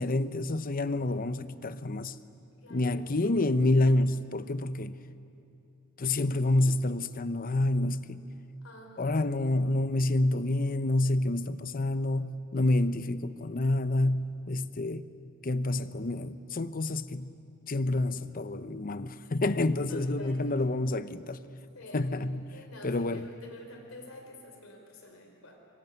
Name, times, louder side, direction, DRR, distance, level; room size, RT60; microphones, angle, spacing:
voice 1, 0.0-2.2 2.7-4.9 6.0-8.3 9.0-15.1 15.4-17.4 17.7-21.4 21.9-22.5 22.8-23.3, left 2 dB, 40° left, 0.8 m, -28 dB
voice 2, 2.6-3.2 8.6-9.2 19.9-20.6 21.7-22.0 22.5-25.6, left 1 dB, 70° left, 4.5 m, -48 dB
25.0 x 22.0 x 9.5 m
head